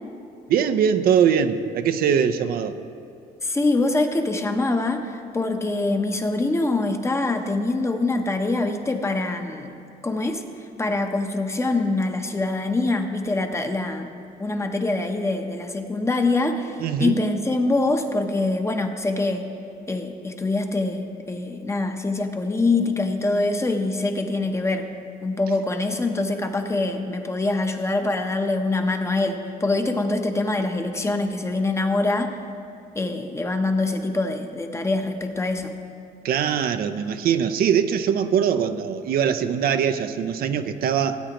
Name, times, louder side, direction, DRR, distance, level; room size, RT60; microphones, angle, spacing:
voice 1, 0.5-2.8 16.8-17.2 36.2-41.2, right 8 dB, 60° right, 9 dB, 0.5 m, -22 dB
voice 2, 3.4-9.8 10.0-10.4 10.8-19.5 19.9-24.9 25.2-32.4 32.9-35.7, left 2 dB, 15° left, 5 dB, 0.8 m, -24 dB
18.0 x 8.7 x 3.0 m, 2.5 s
cardioid pair, 110°, 17 cm